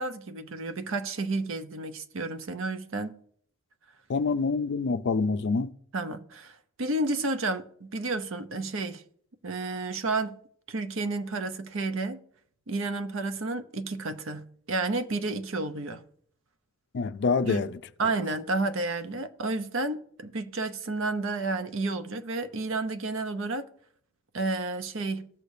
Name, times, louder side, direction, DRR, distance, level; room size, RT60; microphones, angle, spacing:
voice 1, 0.0-3.2 5.9-9.0 9.4-10.4 10.7-12.2 12.7-16.0 17.4-17.6 18.0-23.7 24.3-25.3, right 3 dB, 60° right, 0.7 m, -31 dB
voice 2, 4.1-5.7 16.9-17.8, left 4 dB, 50° left, 0.4 m, -26 dB
15.5 x 6.6 x 2.7 m
head